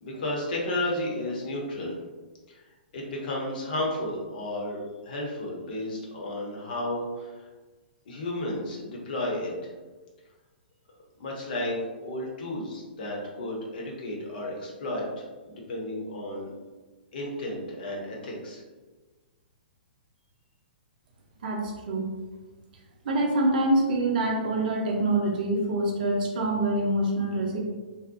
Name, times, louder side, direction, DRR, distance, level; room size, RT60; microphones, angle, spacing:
voice 1, 0.0-2.0 2.5-2.6 2.9-4.8 5.0-7.5 8.1-9.7 11.2-16.5 17.1-18.6, left 1 dB, 60° left, -2 dB, 0.8 m, -33 dB
voice 2, 21.4-22.1 23.0-27.6, right 1 dB, 55° right, 0 dB, 0.6 m, -25 dB
2.7 x 2.0 x 2.6 m, 1.3 s
figure-of-eight pair, 120°, 6 cm